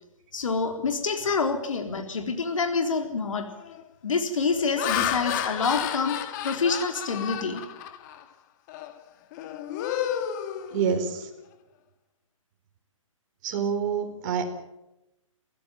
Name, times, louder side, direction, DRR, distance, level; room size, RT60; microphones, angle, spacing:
voice 1, 0.3-3.5 4.0-6.2 6.4-7.6, left 4 dB, 70° left, 5 dB, 3.8 m, -27 dB
Laughter, 2.7-2.9 3.5-3.8 4.4-8.2 8.7-8.9 9.3-11.2, left 10 dB, 35° left, 2.0 m, -32 dB
voice 2, 10.7-11.3 13.4-14.5, right 6 dB, 35° right, 3 dB, 4.5 m, -27 dB
28.0 x 15.5 x 9.2 m, 0.94 s
hypercardioid pair, 140°, 17 cm